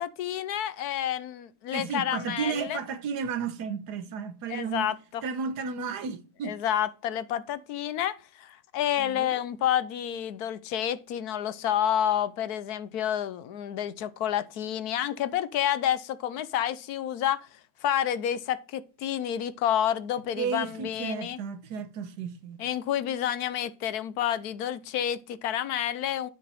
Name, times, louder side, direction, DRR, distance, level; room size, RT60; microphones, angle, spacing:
voice 1, 0.0-2.8 4.5-5.2 6.4-17.5 17.8-21.4 22.6-26.3, left 10 dB, 75° left, 1.2 m, -29 dB
voice 2, 1.7-4.9 5.2-6.6 9.0-9.4 20.4-22.7, right 6 dB, 85° right, 1.5 m, -33 dB
9.4 x 5.3 x 4.2 m
omnidirectional pair, 1.7 m